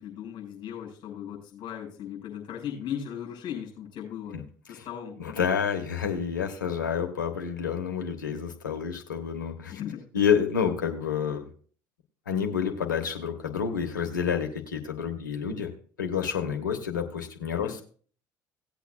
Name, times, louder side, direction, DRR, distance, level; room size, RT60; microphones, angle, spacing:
voice 1, 0.0-4.4 4.7-5.2 9.7-10.0 17.5-17.8, left 9 dB, 50° left, 0 dB, 6.0 m, -37 dB
voice 2, 5.2-9.8 10.1-11.5 12.3-15.7 16.0-17.8, left 7 dB, 85° left, 5 dB, 1.4 m, -29 dB
18.0 x 8.2 x 2.4 m, 0.43 s
hypercardioid pair, 60°, 10 cm